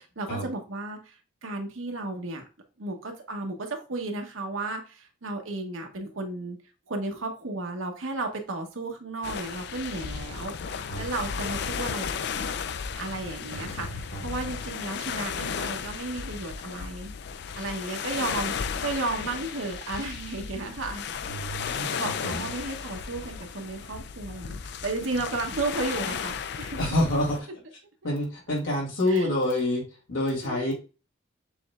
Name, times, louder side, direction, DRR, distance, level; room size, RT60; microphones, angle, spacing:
voice 1, 0.0-2.4 2.8-6.6 6.9-12.6 12.9-17.1 17.5-21.0 21.5-26.8 29.1-29.3 30.4-30.7, right 2 dB, 85° right, 4 dB, 1.1 m, -34 dB
sound 1, 9.2-27.4, left 6 dB, 55° left, 0.4 m, -34 dB
voice 2, 21.3-21.9 22.2-22.4 26.8-27.5 28.0-30.7, left 1 dB, 85° left, -3 dB, 2.5 m, -27 dB
6.8 x 3.2 x 2.3 m, 0.33 s
head